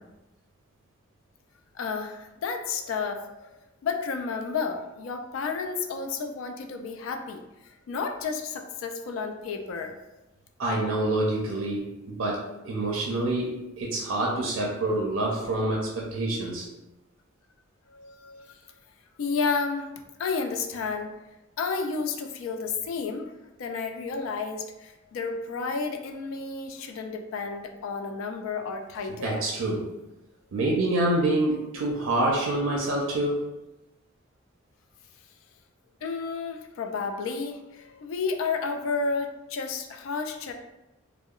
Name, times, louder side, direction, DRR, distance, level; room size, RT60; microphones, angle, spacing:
voice 1, 1.7-10.0 16.3-16.4 17.9-18.6 19.2-19.9 20.2-21.2 21.6-23.3 23.6-29.4 36.0-40.5, left 4 dB, 80° left, 5 dB, 0.3 m, -31 dB
voice 2, 10.6-16.7 29.2-29.9 30.5-33.5, right 1 dB, 80° right, -2 dB, 0.4 m, -27 dB
2.8 x 2.0 x 2.3 m, 0.99 s
head